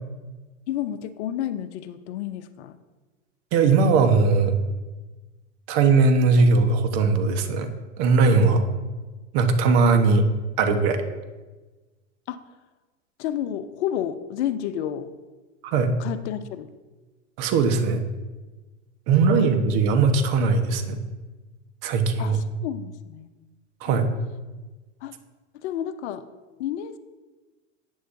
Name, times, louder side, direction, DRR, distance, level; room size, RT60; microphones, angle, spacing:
voice 1, 0.7-2.8 12.3-12.4 13.2-15.1 16.0-16.7 19.4-19.5 22.2-23.3 23.9-24.0 25.0-25.1 25.5-26.3 26.6-27.0, left 10 dB, 65° left, 12 dB, 0.7 m, -31 dB
voice 2, 3.5-4.6 5.7-7.7 8.0-8.7 9.3-10.2 10.6-11.0 15.6-15.9 17.4-18.0 19.1-21.0 21.8-22.4 23.8-24.1, right 4 dB, 50° right, 7 dB, 1.3 m, -19 dB
11.0 x 8.6 x 2.7 m, 1.2 s
hypercardioid pair, 95°, 37 cm